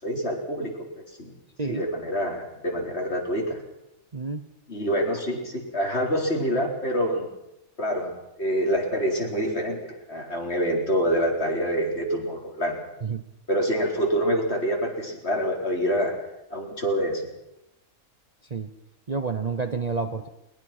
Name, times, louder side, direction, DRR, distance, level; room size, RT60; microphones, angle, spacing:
voice 1, 0.0-0.7 1.2-1.3 1.7-3.6 4.7-7.3 7.8-12.8 13.5-16.2 16.5-17.2, equal, 50° left, 0 dB, 4.3 m, -26 dB
voice 2, 4.1-4.5 13.0-13.2 18.5-18.7 19.1-20.3, right 4 dB, 35° right, 8 dB, 1.0 m, -29 dB
21.0 x 20.5 x 6.0 m, 0.86 s
omnidirectional pair, 1.4 m